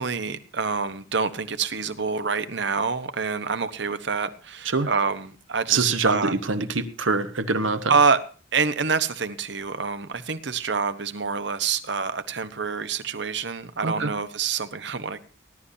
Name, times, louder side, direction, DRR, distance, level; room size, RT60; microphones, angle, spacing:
voice 1, 0.0-6.3 7.9-8.2 8.5-15.2, right 5 dB, 60° right, 11 dB, 1.0 m, -26 dB
voice 2, 5.7-7.9 13.8-14.1, right 4 dB, 85° right, 9 dB, 1.3 m, -24 dB
19.5 x 11.5 x 2.8 m, 0.37 s
head